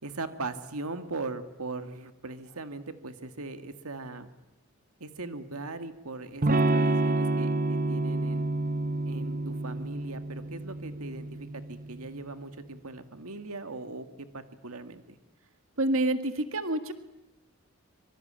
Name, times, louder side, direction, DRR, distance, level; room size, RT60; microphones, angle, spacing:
voice 1, 0.0-4.3 5.0-8.5 9.1-15.2, right 3 dB, 85° right, 9 dB, 1.9 m, -39 dB
Electric guitar / Strum, 6.4-12.1, right 2 dB, 40° right, 1.0 m, -28 dB
voice 2, 15.8-16.9, right 1 dB, 70° right, 9 dB, 1.9 m, -27 dB
26.0 x 25.0 x 8.8 m, 0.93 s
head